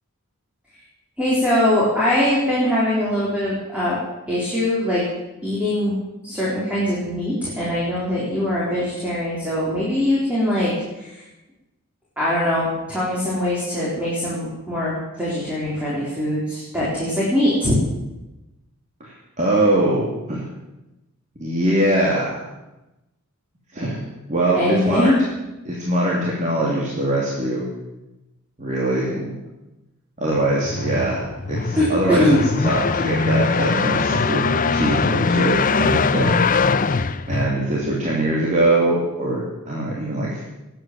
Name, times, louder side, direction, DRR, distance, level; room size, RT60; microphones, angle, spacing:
voice 1, 1.2-4.0 4.3-5.0 5.4-6.0 6.2-11.2 12.2-17.7 24.5-25.1 31.8-32.4, left 1 dB, 5° right, -7 dB, 4.0 m, -22 dB
voice 2, 19.0-20.5 21.4-22.4 23.7-24.0 24.3-25.1 25.6-27.6 28.6-29.3 30.2-32.3 32.6-34.4 34.7-36.4 37.3-40.4, right 1 dB, 35° right, -5 dB, 2.8 m, -22 dB
sound 1, 30.4-38.0, left 4 dB, 40° left, 0.6 m, -21 dB
20.0 x 9.0 x 7.6 m, 1.0 s
head